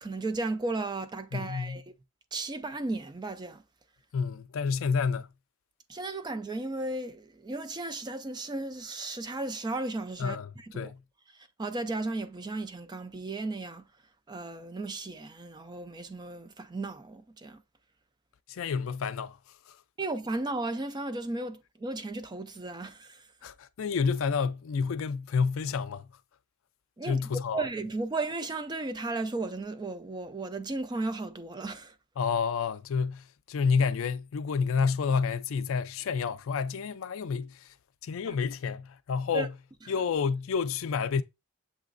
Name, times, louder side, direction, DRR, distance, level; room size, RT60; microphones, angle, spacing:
voice 1, 0.0-1.8 2.3-3.6 5.9-10.9 11.3-13.9 14.3-17.6 20.0-23.3 27.0-27.2 27.5-31.9 38.3-38.4 39.3-39.5, right 2 dB, 20° right, 0.4 m, -35 dB
voice 2, 1.3-1.8 4.1-5.3 10.2-11.0 18.5-19.4 19.7-19.8 23.4-26.1 27.1-27.6 32.2-37.7 38.0-39.5 39.9-41.2, left 5 dB, 70° left, 0.4 m, -29 dB
7.2 x 3.0 x 2.5 m
head